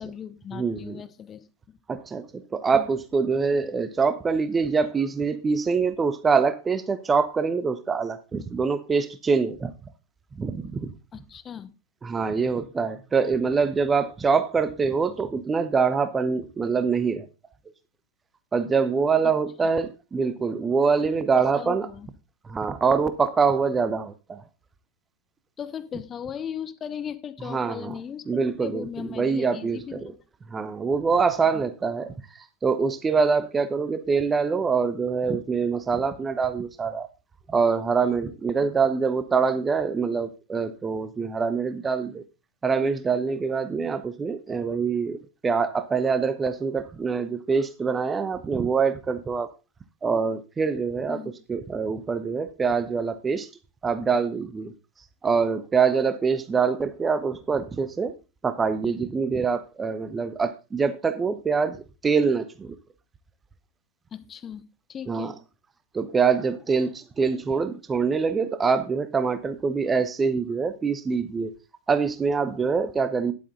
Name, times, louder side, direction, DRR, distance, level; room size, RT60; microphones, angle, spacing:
voice 1, 0.0-1.8 2.7-2.9 11.1-11.7 21.4-22.1 25.6-28.2 28.6-30.2 31.5-31.6 38.6-38.7 51.1-51.3 64.1-64.6 64.9-65.4, left 8 dB, 25° left, 0.9 m, -37 dB
voice 2, 0.5-1.0 1.9-9.7 10.4-10.9 12.0-17.3 18.5-21.9 22.4-24.4 27.5-28.0 28.3-28.9 29.2-30.0 30.5-32.1 32.6-37.1 37.5-42.2 42.6-49.5 50.0-51.2 51.5-53.5 53.8-54.7 55.2-58.1 58.4-61.8 62.0-62.8 65.1-65.3 65.9-71.5 71.9-73.3, right 5 dB, 15° right, 0.8 m, -24 dB
10.0 x 8.3 x 3.8 m
figure-of-eight pair, 90°, 0 cm